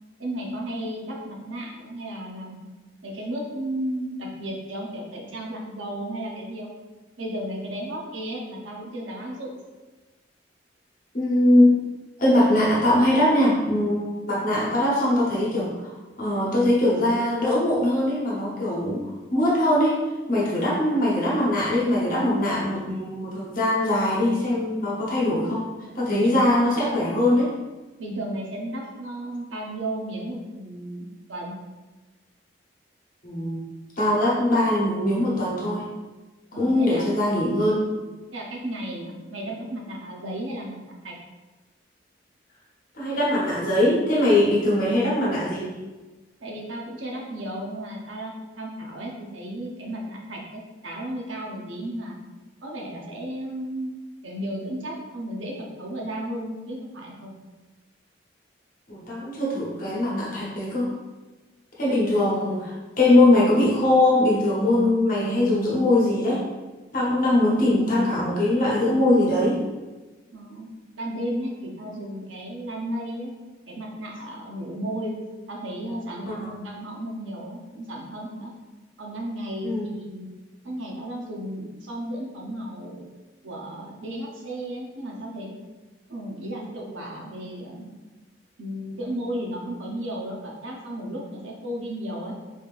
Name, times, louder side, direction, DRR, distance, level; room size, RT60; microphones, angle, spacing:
voice 1, 0.2-2.6 3.0-6.7 7.2-9.5 26.2-26.3 28.0-31.6 36.5-37.2 38.3-41.1 46.4-52.2 52.6-53.9 54.2-57.3 70.3-70.7 71.0-73.3 73.7-75.2 75.5-78.5 79.0-80.3 80.6-83.1 83.4-85.5 86.1-87.9 88.6-92.3, right 1 dB, 90° right, -1 dB, 0.8 m, -34 dB
voice 2, 11.1-11.8 12.2-20.0 20.3-25.7 25.9-27.5 33.2-33.7 34.0-35.9 36.5-37.8 42.9-45.7 58.9-60.9 61.8-66.4 66.9-69.6 76.3-76.5 79.6-79.8, left 1 dB, 45° left, -6 dB, 0.9 m, -21 dB
4.1 x 3.5 x 2.5 m, 1.2 s
head